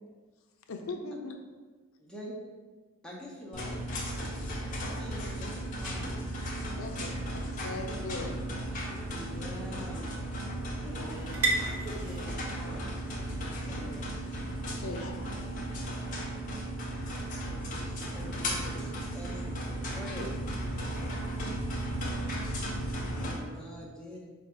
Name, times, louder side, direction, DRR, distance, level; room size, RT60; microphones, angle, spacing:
voice 1, 0.7-1.4 6.7-8.4 14.7-15.1, left 3 dB, 70° left, 4 dB, 0.5 m, -39 dB
voice 2, 2.0-2.3 3.0-6.2 6.5-6.9 9.1-10.1 10.8-11.3 11.8-12.9 13.6-14.1 17.4-20.4 23.2-24.3, equal, 5° left, -4 dB, 0.6 m, -45 dB
sound 1, 3.5-23.3, right 1 dB, 35° left, 0.7 m, -35 dB
sound 2, 7.2-21.2, equal, 20° right, 1.0 m, -52 dB
sound 3, 8.0-15.7, right 3 dB, 85° right, 0.9 m, -39 dB
voice 3, 11.0-11.6 15.0-15.3 20.9-22.6, equal, 55° right, -4 dB, 1.1 m, -52 dB
4.5 x 2.5 x 4.3 m, 1.4 s
head